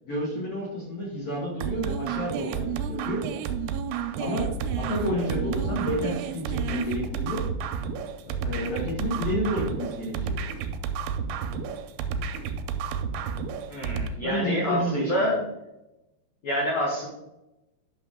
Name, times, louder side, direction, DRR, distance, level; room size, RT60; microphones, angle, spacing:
voice 1, 0.0-3.2 4.2-7.5 8.3-10.4 14.2-15.4, equal, 50° left, -5 dB, 2.1 m, -30 dB
sound 1, 1.6-14.1, right 6 dB, 85° right, 3.0 m, -31 dB
voice 2, 13.7-15.4 16.4-17.1, equal, 75° left, -2 dB, 1.6 m, -27 dB
9.8 x 6.2 x 3.7 m, 0.94 s
omnidirectional pair, 5.3 m